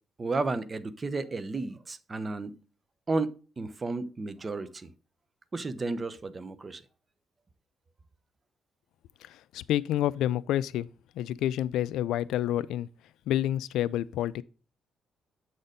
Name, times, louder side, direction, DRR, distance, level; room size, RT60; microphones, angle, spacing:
voice 1, 0.2-2.6 3.1-4.9 5.5-6.8, right 3 dB, 30° right, 0.7 m, -33 dB
voice 2, 9.2-10.9 11.2-12.9 13.3-14.4, left 12 dB, 85° left, 0.3 m, -29 dB
7.8 x 4.2 x 5.0 m
cardioid pair, 90°, 0 cm